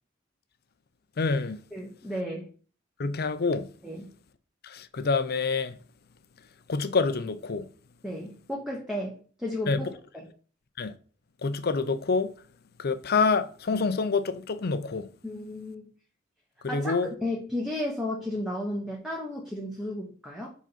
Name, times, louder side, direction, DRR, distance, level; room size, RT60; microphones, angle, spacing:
voice 1, 1.2-1.6 3.0-3.7 4.6-5.8 6.7-7.7 9.7-9.8 10.8-11.0 11.4-12.3 12.8-15.1 16.6-17.1, left 4 dB, 55° left, 0.6 m, -27 dB
voice 2, 1.7-2.5 3.8-4.1 8.0-9.9 10.1-10.3 15.2-15.9 16.7-20.5, left 1 dB, ahead, 1.1 m, -33 dB
5.0 x 4.0 x 5.7 m
head